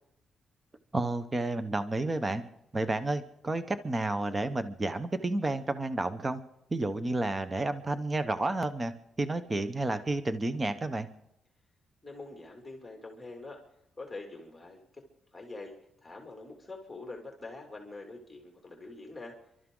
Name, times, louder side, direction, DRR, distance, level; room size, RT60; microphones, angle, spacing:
voice 1, 0.9-2.4 2.7-6.4 6.7-11.1, right 2 dB, 20° right, 11 dB, 0.9 m, -31 dB
voice 2, 12.0-13.6 14.0-15.0 15.3-15.7 16.0-19.4, left 2 dB, 10° left, 1 dB, 2.6 m, -45 dB
29.5 x 12.5 x 3.8 m, 0.84 s
cardioid pair, 120°, 0 cm